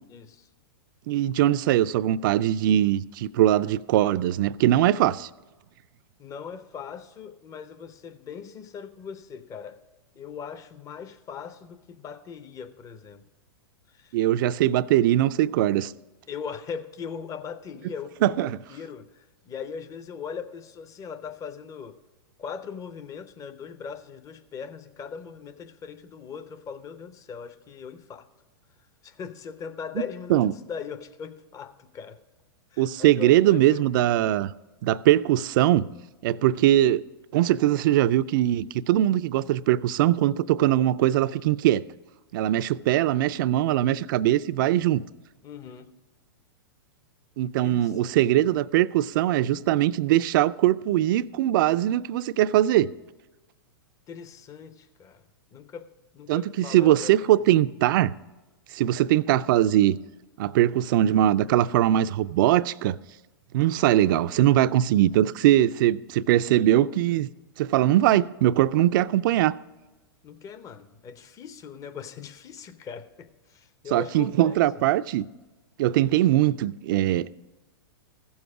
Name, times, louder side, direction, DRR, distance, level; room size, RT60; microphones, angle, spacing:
voice 1, 0.1-0.5 6.2-9.8 10.1-13.2 13.9-14.2 16.3-22.0 22.4-28.3 29.0-32.2 32.7-33.8 45.4-46.0 47.6-48.2 54.1-55.2 55.5-55.9 56.1-57.3 70.2-74.6, left 6 dB, 25° left, 0.8 m, -40 dB
voice 2, 1.1-5.3 14.1-15.9 18.2-18.6 30.3-30.5 32.8-34.5 34.8-35.9 36.2-37.0 37.3-41.8 42.3-45.0 47.4-52.9 56.3-58.1 58.7-60.0 60.4-63.0 63.5-67.3 67.6-69.6 73.9-75.3 75.8-77.3, right 13 dB, 55° right, 0.4 m, -21 dB
15.5 x 7.1 x 4.8 m
hypercardioid pair, 115°, 13 cm